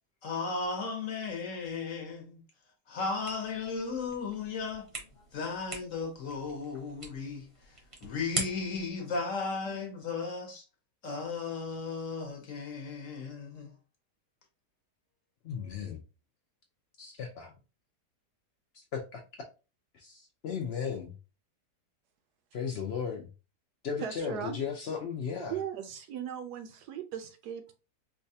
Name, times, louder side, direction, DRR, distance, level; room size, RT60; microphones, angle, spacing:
voice 1, 0.2-2.4 2.9-4.9 5.3-10.6 11.0-13.7, left 4 dB, 60° left, 1.0 m, -35 dB
sound 1, 3.2-8.9, right 2 dB, 30° right, 0.6 m, -42 dB
voice 2, 15.4-16.0 17.0-17.5 18.7-19.2 19.9-21.1 22.5-23.3 23.8-25.5, left 6 dB, 90° left, 0.5 m, -36 dB
voice 3, 24.0-24.6 25.4-27.7, right 8 dB, 75° right, 1.2 m, -38 dB
4.7 x 2.2 x 2.7 m
omnidirectional pair, 1.8 m